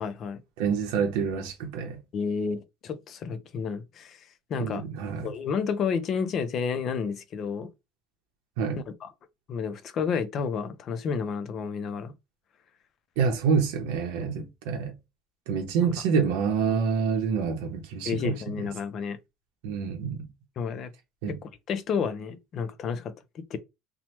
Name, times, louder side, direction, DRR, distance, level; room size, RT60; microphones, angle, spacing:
voice 1, 0.0-0.4 2.1-4.9 5.2-7.7 9.0-9.1 9.5-12.1 15.8-15.9 16.7-16.8 18.0-19.2 20.6-20.9 21.3-23.6, left 6 dB, 40° left, 0.5 m, -31 dB
voice 2, 0.6-2.0 4.6-5.3 8.6-8.8 13.2-14.9 15.5-18.3 19.6-20.3 21.2-21.4, right 6 dB, 85° right, 0.6 m, -27 dB
3.0 x 2.0 x 2.9 m
cardioid pair, 145°, 0 cm